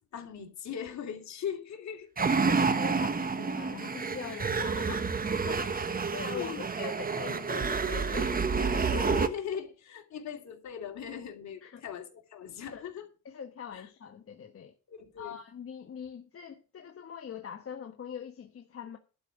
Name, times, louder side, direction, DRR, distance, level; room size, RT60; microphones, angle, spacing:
voice 1, 0.1-2.1 4.3-5.0 6.3-6.8 8.9-13.1 13.7-13.9 14.9-15.4, left 8 dB, 65° left, 2.8 m, -39 dB
sound 1, 2.2-9.3, right 5 dB, 30° right, 1.2 m, -29 dB
voice 2, 2.3-8.9 11.6-11.8 12.6-12.9 13.2-14.7 15.2-19.0, left 7 dB, 50° left, 1.3 m, -43 dB
12.0 x 5.3 x 8.6 m
cardioid pair, 90°, 30 cm